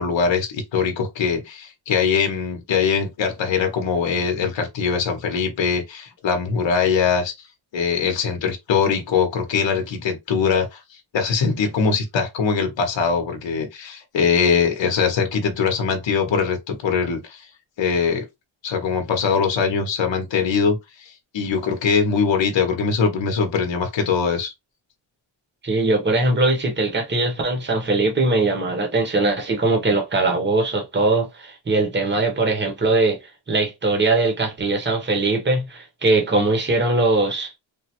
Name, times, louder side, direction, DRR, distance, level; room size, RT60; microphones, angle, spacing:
voice 1, 0.0-7.3 7.7-10.8 11.1-17.5 17.8-18.3 18.6-24.5, left 6 dB, 70° left, 0.8 m, -22 dB
voice 2, 25.6-33.2 33.5-37.5, right 2 dB, 25° right, 0.9 m, -21 dB
3.3 x 2.0 x 2.8 m
wide cardioid pair, 125°, 47 cm